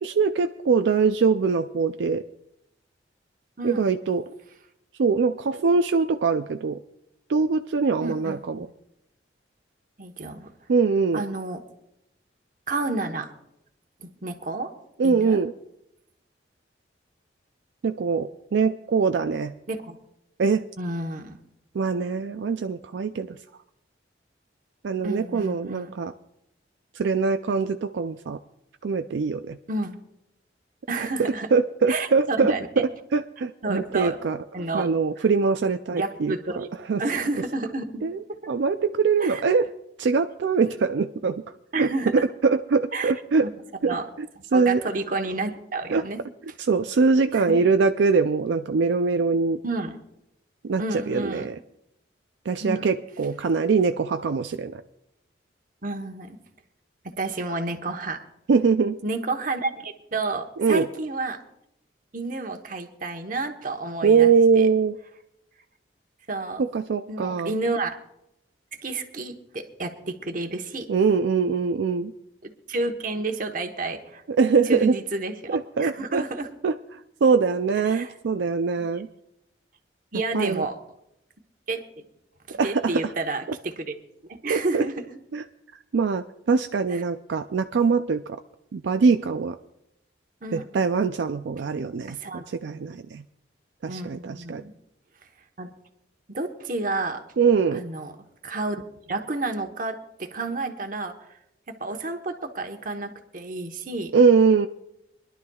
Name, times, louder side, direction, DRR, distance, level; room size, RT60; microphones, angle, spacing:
voice 1, 0.0-2.2 3.6-4.3 5.0-6.8 7.3-8.7 10.7-11.3 15.0-15.5 17.8-19.5 20.4-20.6 21.7-23.4 24.8-26.1 26.9-28.4 28.8-29.6 31.0-31.1 31.5-34.4 34.7-36.3 36.9-37.0 38.0-38.2 38.5-39.7 40.0-41.4 41.8-43.5 43.8-44.3 44.5-44.8 45.9-46.0 46.6-49.6 50.6-51.6 52.5-54.8 58.5-59.0 60.6-60.9 64.0-65.0 66.6-67.5 70.9-72.1 74.4-75.0 75.5-76.2 76.6-76.7 77.2-79.1 80.3-80.7 82.6-82.9 84.5-84.8 85.3-85.4 85.9-88.4 88.7-89.6 90.5-92.2 92.5-93.2 93.8-94.6 97.4-97.8 104.1-104.7, right 5 dB, 75° right, 8 dB, 0.4 m, -22 dB
voice 2, 8.0-8.4 10.0-10.5 11.1-11.6 12.7-13.3 14.0-14.7 15.0-15.4 19.7-20.0 20.8-21.4 25.0-26.0 29.7-30.0 30.9-31.5 31.9-32.8 33.6-34.2 34.5-34.9 35.2-35.3 35.9-36.7 37.0-38.0 39.2-39.4 41.7-42.3 42.9-43.1 43.8-44.1 44.5-46.2 47.3-47.6 49.6-50.0 50.8-51.5 52.6-52.9 55.8-56.4 57.0-58.2 59.0-61.4 62.1-64.7 66.3-66.6 67.1-68.0 68.8-70.9 72.4-74.2 74.7-76.5 77.9-78.1 78.9-79.0 80.1-80.8 81.7-81.8 82.5-83.9 84.3-85.0 86.9-87.0 90.4-90.7 92.1-92.4 93.9-94.7 95.6-95.7 96.3-97.2 97.7-98.1 98.4-101.1 101.7-104.1, right 2 dB, 45° right, 5 dB, 1.1 m, -30 dB
25.0 x 11.5 x 2.3 m, 0.82 s
head